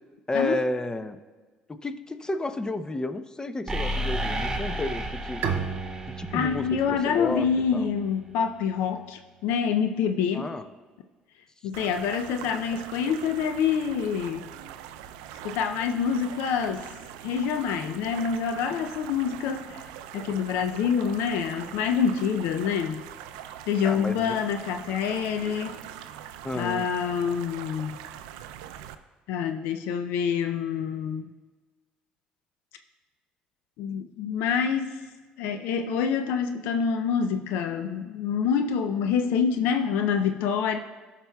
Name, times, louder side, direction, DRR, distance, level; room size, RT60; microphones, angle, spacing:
voice 1, 0.3-1.2 1.7-5.6 6.2-7.9 10.3-10.6 23.8-24.4 26.4-26.9, left 2 dB, 20° left, 10 dB, 0.7 m, -31 dB
sound 1, 3.7-7.5, equal, 15° right, 1.4 m, -32 dB
Bowed string instrument, 5.4-8.9, right 6 dB, 65° right, 0.9 m, -35 dB
voice 2, 6.3-10.5 11.6-14.4 15.4-16.9 17.2-19.8 20.1-23.1 23.7-25.8 26.6-28.0 29.3-31.3 33.8-35.0 35.4-40.8, left 7 dB, 75° left, 7 dB, 0.4 m, -26 dB
sound 2, 11.7-28.9, right 10 dB, 85° right, 0.4 m, -42 dB
15.5 x 5.8 x 2.3 m, 1.3 s
hypercardioid pair, 65°, 4 cm